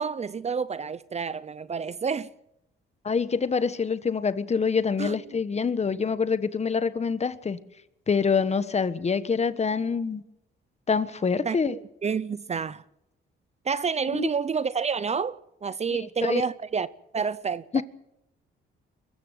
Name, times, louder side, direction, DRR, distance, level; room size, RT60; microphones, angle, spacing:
voice 1, 0.0-2.3 5.0-5.2 11.4-12.8 13.6-16.9 17.1-17.8, right 6 dB, 35° right, 0.7 m, -29 dB
voice 2, 3.0-7.6 8.1-10.2 10.9-11.7 14.1-14.3 15.9-16.4 17.7-17.8, left 5 dB, 35° left, 1.3 m, -26 dB
22.5 x 14.0 x 9.4 m
cardioid pair, 90°, 20 cm